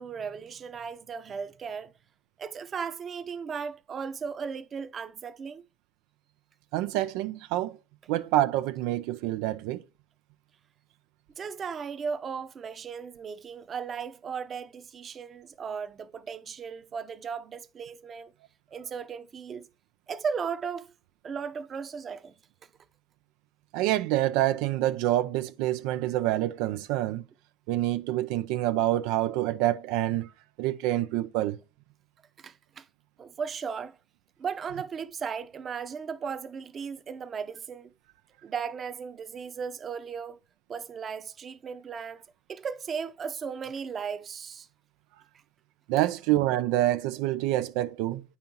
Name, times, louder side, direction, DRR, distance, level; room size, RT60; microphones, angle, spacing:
voice 1, 0.0-1.9 2.4-5.6 11.4-18.3 18.7-19.7 20.1-20.9 21.2-22.3 32.4-32.9 33.2-34.0 34.4-37.9 38.4-40.4 40.7-42.2 42.5-44.7, right 6 dB, 35° right, 0.7 m, -36 dB
voice 2, 6.7-7.7 8.1-9.8 23.7-27.2 27.7-30.3 30.6-31.6 45.9-48.2, right 14 dB, 85° right, 0.4 m, -27 dB
8.8 x 5.5 x 2.9 m
cardioid pair, 115°, 0 cm